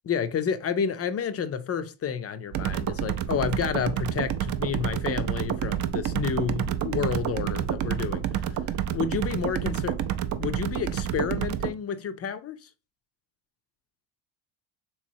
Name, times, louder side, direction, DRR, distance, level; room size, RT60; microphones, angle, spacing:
voice 1, 0.0-8.5 8.9-10.0 10.4-12.7, left 7 dB, 35° left, 0.4 m, -30 dB
sound 1, 2.5-11.7, right 10 dB, 40° right, 0.4 m, -29 dB
3.4 x 3.1 x 2.6 m
cardioid pair, 95°, 48 cm